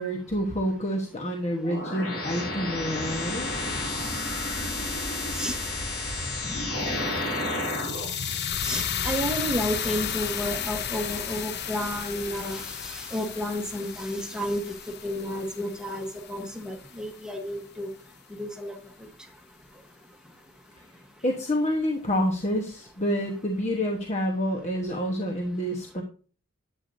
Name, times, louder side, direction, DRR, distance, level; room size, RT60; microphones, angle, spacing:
voice 1, 0.0-3.5 21.2-26.0, equal, 35° left, 1 dB, 1.1 m, -28 dB
sound 1, 1.6-8.1, left 2 dB, 85° left, 2.8 m, -31 dB
sound 2, 6.8-16.9, left 8 dB, 50° left, 0.7 m, -33 dB
voice 2, 8.6-14.6 15.0-17.9 18.4-18.8, equal, 5° right, 3 dB, 1.1 m, -31 dB
11.0 x 8.3 x 2.7 m, 0.38 s
head